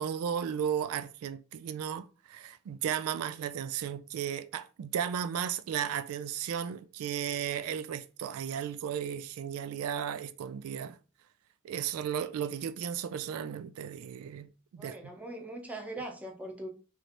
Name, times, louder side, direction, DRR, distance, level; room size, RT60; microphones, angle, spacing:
voice 1, 0.0-11.0 11.6-14.5 14.7-15.1, right 8 dB, 80° right, 0.3 m, -35 dB
voice 2, 14.8-16.7, right 1 dB, 5° right, 0.7 m, -41 dB
3.1 x 2.7 x 4.2 m
head